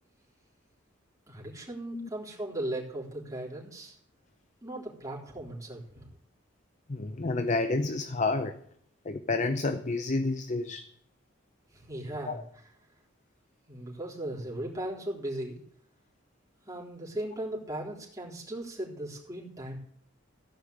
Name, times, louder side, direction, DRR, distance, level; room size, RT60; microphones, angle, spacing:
voice 1, 1.3-4.0 4.6-6.1 11.7-12.4 13.7-15.6 16.7-19.8, right 1 dB, 15° right, -4 dB, 4.0 m, -37 dB
voice 2, 6.9-8.5 9.1-10.9 12.3-12.4, left 3 dB, 40° left, 9 dB, 0.7 m, -29 dB
16.5 x 5.6 x 8.0 m, 0.66 s
head